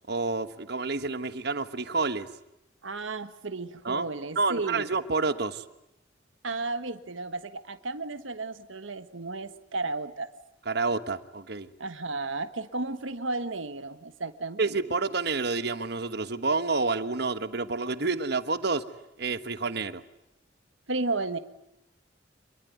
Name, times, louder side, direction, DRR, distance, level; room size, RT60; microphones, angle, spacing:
voice 1, 0.1-2.3 3.8-4.0 4.3-5.6 10.6-11.7 14.6-18.9 19.2-20.0, right 3 dB, 55° right, 12 dB, 1.4 m, -29 dB
voice 2, 2.8-4.9 6.4-10.3 11.8-14.8 20.9-21.4, right 3 dB, 85° right, 10 dB, 1.3 m, -33 dB
26.5 x 22.0 x 9.4 m, 0.84 s
head